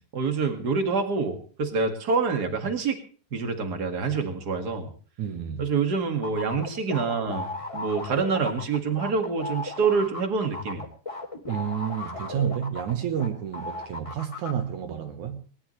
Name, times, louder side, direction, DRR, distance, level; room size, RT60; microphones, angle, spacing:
voice 1, 0.1-3.0 3.3-4.9 5.6-10.8, right 4 dB, 45° right, 1.3 m, -26 dB
voice 2, 5.2-5.7 11.5-15.4, right 9 dB, 70° right, 1.9 m, -30 dB
sound 1, 6.2-13.3 13.5-14.5, left 2 dB, 10° left, 2.0 m, -35 dB
20.5 x 20.0 x 3.3 m
omnidirectional pair, 5.1 m